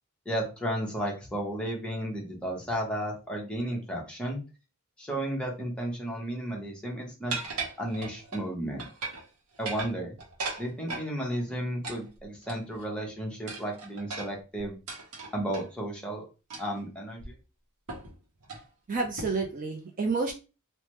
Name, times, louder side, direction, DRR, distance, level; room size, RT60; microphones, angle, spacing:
voice 1, 0.2-4.4 5.0-7.4 7.8-8.8 9.6-10.1 10.6-14.8 15.3-16.2 16.6-17.3, right 1 dB, 5° left, -2 dB, 0.9 m, -33 dB
sound 1, 7.3-8.5 8.8-9.3 9.5-11.1 11.8-12.8 13.5-15.7 16.5-16.8 17.2-17.3 17.9-18.1 18.4-18.7 19.2-19.5, right 3 dB, 80° right, 0.9 m, -38 dB
voice 2, 18.9-20.3, right 4 dB, 35° right, 3 dB, 0.4 m, -29 dB
3.2 x 2.1 x 3.0 m, 0.31 s
head